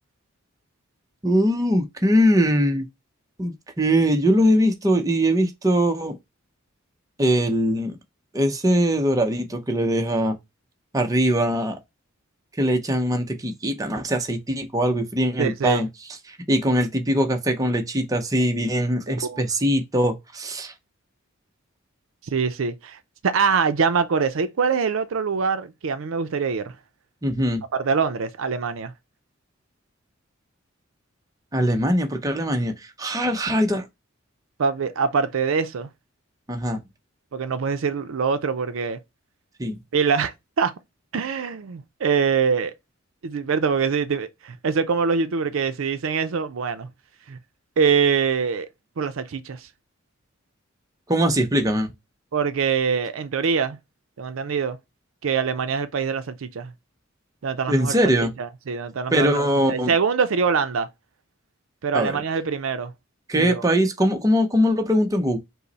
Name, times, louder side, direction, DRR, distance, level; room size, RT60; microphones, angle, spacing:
voice 1, 1.2-2.9 3.4-6.2 7.2-8.0 8.3-10.4 10.9-11.8 12.6-15.9 16.5-20.7 27.2-27.6 31.5-32.7 33.0-33.9 36.5-36.8 39.6-39.8 51.1-51.9 57.7-58.3 59.1-59.9 61.9-62.2 63.3-65.4, equal, 15° right, 0.6 m, -21 dB
voice 2, 15.4-15.9 19.1-19.4 22.3-26.7 27.7-28.9 34.6-35.9 37.3-39.0 39.9-40.7 41.1-42.7 43.2-46.9 47.3-47.4 47.8-48.7 49.0-49.7 52.3-53.8 54.2-54.8 55.2-56.7 57.4-58.0 58.4-60.9 61.8-62.9 63.4-63.6, right 5 dB, 70° right, 0.5 m, -24 dB
5.5 x 2.1 x 3.9 m
head